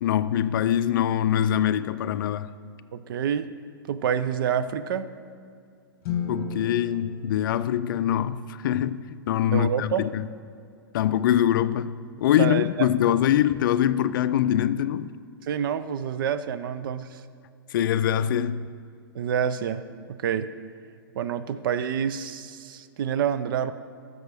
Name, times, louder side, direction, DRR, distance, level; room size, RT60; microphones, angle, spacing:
voice 1, 0.0-2.5 6.3-10.3 10.9-15.1 17.7-18.7, left 10 dB, 55° left, 0.4 m, -23 dB
voice 2, 2.9-3.5 3.9-5.1 9.5-10.1 12.4-12.9 15.4-17.2 19.1-19.8 20.1-20.5 21.2-23.7, right 8 dB, 60° right, 0.5 m, -27 dB
sound 1, 6.0-8.4, left 5 dB, 40° left, 1.1 m, -35 dB
13.5 x 6.3 x 3.5 m
hypercardioid pair, 140°, 13 cm